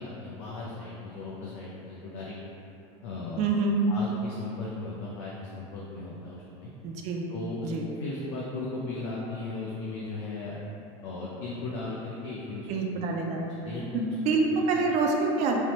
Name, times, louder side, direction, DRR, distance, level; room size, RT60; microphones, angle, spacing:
voice 1, 0.0-2.4 3.0-3.5 3.9-6.7 7.3-10.6 11.0-12.7 13.0-13.1 13.6-13.8, left 3 dB, 90° left, -5 dB, 0.4 m, -37 dB
voice 2, 3.4-3.9 6.8-7.3 7.6-7.9 12.7-13.4 13.9-15.6, right 3 dB, 50° right, 1 dB, 0.4 m, -26 dB
3.1 x 2.0 x 2.8 m, 2.8 s
supercardioid pair, 115°, 15 cm